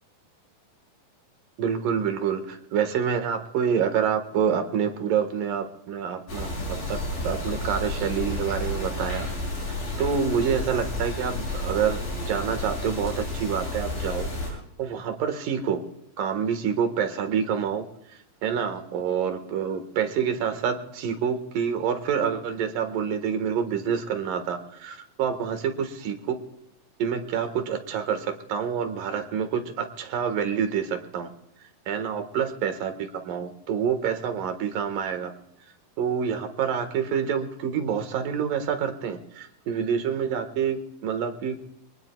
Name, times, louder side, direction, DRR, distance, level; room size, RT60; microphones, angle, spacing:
voice 1, 1.6-7.0 7.2-9.3 9.7-14.3 14.8-15.8 16.2-17.8 18.4-26.3 27.0-31.3 31.9-35.3 36.0-41.6, right 7 dB, 75° right, 7 dB, 3.2 m, -27 dB
sound 1, 6.3-14.5, left 1 dB, 90° left, 8.9 m, -31 dB
26.0 x 19.0 x 2.3 m, 0.78 s
omnidirectional pair, 3.9 m